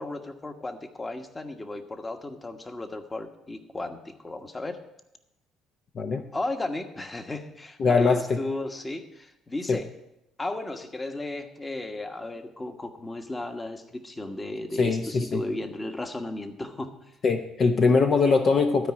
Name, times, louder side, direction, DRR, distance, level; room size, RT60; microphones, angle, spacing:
voice 1, 0.0-4.8 6.3-9.9 10.4-16.9, left 2 dB, 20° left, 7 dB, 1.2 m, -34 dB
voice 2, 7.8-8.4 9.7-9.8 14.8-15.4 17.2-18.9, left 4 dB, 50° left, 5 dB, 0.8 m, -22 dB
13.0 x 4.8 x 8.7 m, 0.88 s
supercardioid pair, 85°, 0 cm